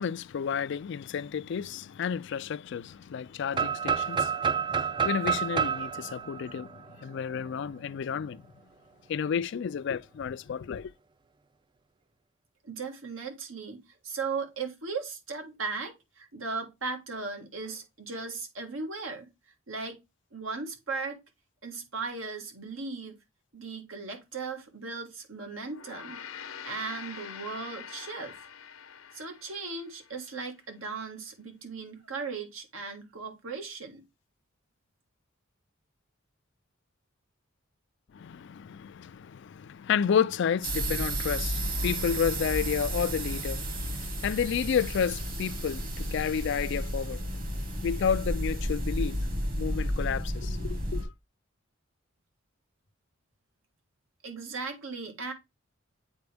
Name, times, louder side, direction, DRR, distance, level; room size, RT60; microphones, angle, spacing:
voice 1, 0.0-8.4 9.1-10.9 38.1-47.6 47.8-49.3 49.6-51.1, left 7 dB, 60° left, 0.3 m, -31 dB
sound 1, 3.5-7.4, right 7 dB, 25° right, 0.4 m, -29 dB
voice 2, 12.6-19.3 19.7-20.0 20.3-21.2 21.6-23.2 23.5-26.2 26.7-28.5 29.1-34.0 54.2-55.3, right 4 dB, 85° right, 1.7 m, -37 dB
Gong, 25.6-30.2, left 7 dB, 85° left, 0.9 m, -45 dB
sound 2, 40.6-51.0, right 1 dB, 45° right, 1.5 m, -32 dB
8.1 x 4.3 x 3.3 m
head